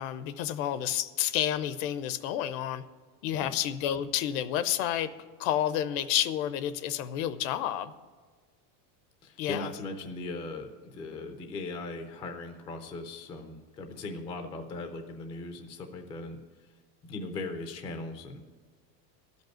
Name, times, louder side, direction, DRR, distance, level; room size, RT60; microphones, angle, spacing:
voice 1, 0.0-2.8 3.2-5.1 5.4-7.9 9.4-9.7, left 11 dB, 60° left, 13 dB, 0.7 m, -30 dB
voice 2, 9.2-16.4 17.0-18.4, left 3 dB, 15° left, 5 dB, 0.4 m, -39 dB
12.5 x 5.4 x 9.1 m, 1.5 s
supercardioid pair, 160°, 45 cm